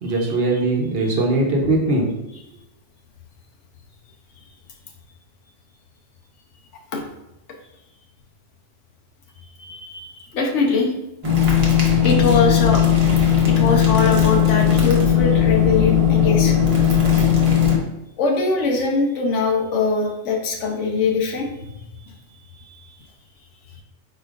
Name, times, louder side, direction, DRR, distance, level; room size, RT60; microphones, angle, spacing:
voice 1, 0.0-2.1, right 2 dB, 60° right, 0 dB, 1.0 m, -20 dB
voice 2, 9.6-10.9 12.0-12.8 13.5-16.5 18.2-21.8 22.6-22.8, left 4 dB, 85° left, 0 dB, 1.1 m, -22 dB
sound 1, 11.2-17.8, left 8 dB, 30° right, 0.9 m, -17 dB
5.0 x 4.3 x 2.4 m, 0.89 s
omnidirectional pair, 1.2 m